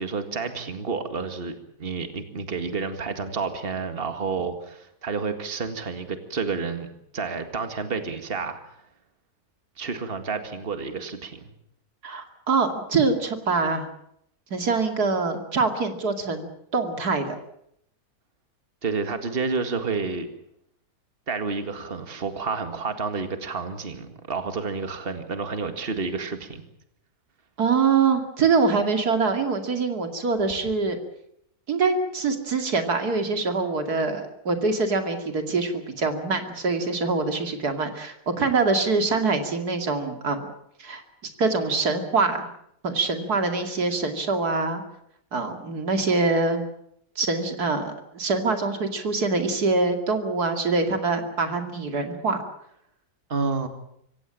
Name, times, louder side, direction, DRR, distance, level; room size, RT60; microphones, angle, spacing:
voice 1, 0.0-8.7 9.8-11.5 18.8-20.3 21.3-26.6 53.3-53.7, right 4 dB, 40° right, 8 dB, 2.1 m, -30 dB
voice 2, 12.0-13.9 14.5-17.4 27.6-31.0 31.7-40.4 40.8-41.0 41.4-42.5 42.8-44.8 45.3-46.6 47.2-52.4, right 4 dB, 85° right, 6 dB, 2.9 m, -24 dB
25.5 x 16.0 x 8.9 m, 0.75 s
omnidirectional pair, 1.6 m